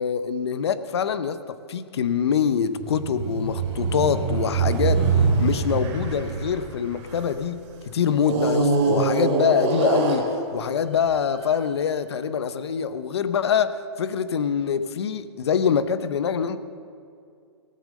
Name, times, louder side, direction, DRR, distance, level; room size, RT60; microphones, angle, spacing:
voice 1, 0.0-16.6, left 7 dB, 70° left, 0.7 m, -25 dB
sound 1, 2.8-7.5 8.2-10.7 11.4-11.5, right 4 dB, 25° right, 2.2 m, -24 dB
18.5 x 8.3 x 6.4 m
hypercardioid pair, 175°, 14 cm